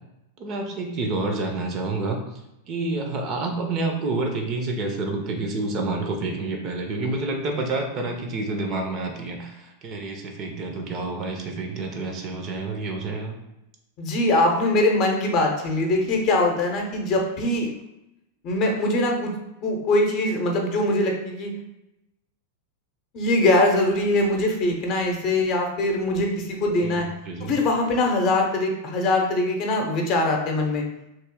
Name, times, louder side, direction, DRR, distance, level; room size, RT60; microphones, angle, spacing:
voice 1, 0.4-13.4 26.8-27.6, right 2 dB, 35° right, 3 dB, 0.6 m, -29 dB
voice 2, 14.0-17.7 18.4-19.3 19.6-21.5 23.1-27.1 27.4-30.8, left 2 dB, 40° left, 1 dB, 0.7 m, -22 dB
3.1 x 2.7 x 3.6 m, 0.90 s
figure-of-eight pair, 90°, 0 cm